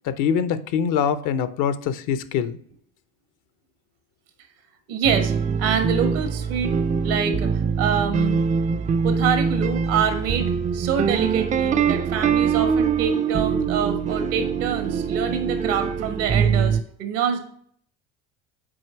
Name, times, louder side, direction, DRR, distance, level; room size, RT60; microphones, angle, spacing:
voice 1, 0.0-2.6, left 7 dB, 65° left, 13 dB, 0.7 m, -24 dB
voice 2, 4.9-5.3 5.6-6.7 7.0-8.4 9.0-17.4, right 7 dB, 80° right, 7 dB, 1.3 m, -26 dB
sound 1, 5.0-16.8, right 6 dB, 25° right, 0.4 m, -23 dB
6.3 x 4.4 x 4.4 m, 0.63 s
supercardioid pair, 80°, 33 cm